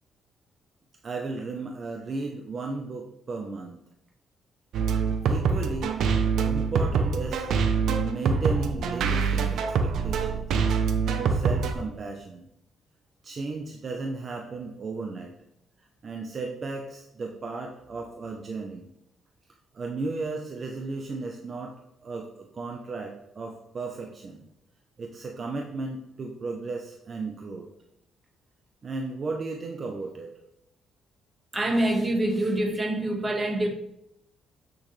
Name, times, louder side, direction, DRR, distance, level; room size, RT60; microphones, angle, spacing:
voice 1, 1.0-3.8 5.2-5.9 6.5-10.6 11.0-12.5 13.2-15.3 16.0-18.9 19.7-21.7 22.0-24.4 25.0-27.7 28.8-30.3, right 3 dB, 45° right, 0.9 m, -35 dB
sound 1, 4.7-11.7, right 5 dB, 75° right, 0.8 m, -25 dB
voice 2, 31.5-33.7, right 1 dB, 25° right, 1.6 m, -25 dB
8.9 x 6.3 x 3.3 m
cardioid pair, 90°, 0 cm